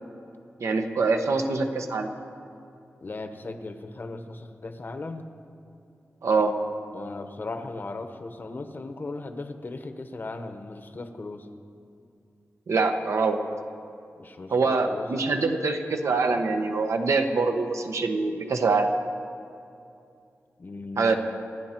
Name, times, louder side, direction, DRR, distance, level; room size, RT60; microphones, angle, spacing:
voice 1, 0.6-2.1 6.2-6.5 12.7-13.4 14.5-18.9 21.0-21.2, right 4 dB, 80° right, 5 dB, 1.1 m, -24 dB
voice 2, 3.0-5.3 6.9-11.5 14.2-15.2 20.6-21.2, left 3 dB, 40° left, 8 dB, 0.9 m, -37 dB
28.0 x 9.8 x 4.5 m, 2.6 s
wide cardioid pair, 150°, 5 cm